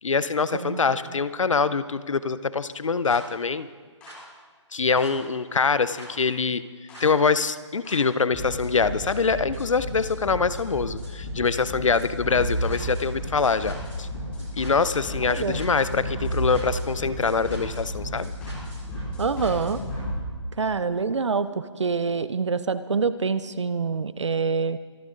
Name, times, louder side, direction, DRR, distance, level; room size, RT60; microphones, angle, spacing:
voice 1, 0.0-3.7 4.7-6.6 7.0-14.1 14.5-18.3, left 5 dB, 90° left, 15 dB, 0.8 m, -24 dB
voice 2, 0.5-1.0 15.3-15.6 19.2-19.8 20.6-24.8, right 5 dB, 70° right, 14 dB, 0.8 m, -26 dB
sound 1, 3.0-3.1 4.0-4.1 5.0-5.1 5.9-6.0 6.9-7.0 7.8-7.9 8.3-20.1, equal, 10° left, 5.1 m, -32 dB
24.5 x 11.5 x 3.9 m, 1.5 s
hypercardioid pair, 175°, 16 cm